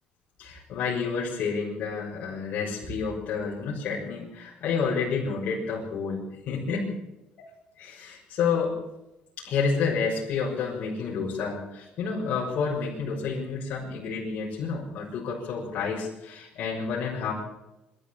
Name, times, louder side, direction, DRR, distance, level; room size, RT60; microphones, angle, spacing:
voice 1, 0.4-6.9 7.4-7.5 7.8-8.8 9.4-17.3, left 5 dB, 60° left, -5 dB, 6.4 m, -29 dB
23.5 x 13.0 x 8.6 m, 0.94 s
cardioid pair, 125°, 3 cm